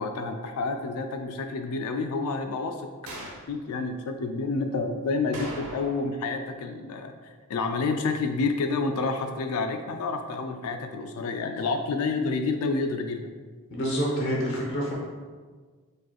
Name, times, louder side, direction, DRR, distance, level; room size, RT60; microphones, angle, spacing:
voice 1, 0.0-13.3, left 3 dB, 75° left, 6 dB, 0.4 m, -29 dB
sound 1, 3.1-3.5 5.3-6.2 6.5-6.6 11.6-11.7, right 2 dB, 70° right, 0.9 m, -40 dB
voice 2, 13.7-14.9, equal, 60° left, -3 dB, 0.9 m, -27 dB
4.9 x 4.2 x 2.3 m, 1.5 s
head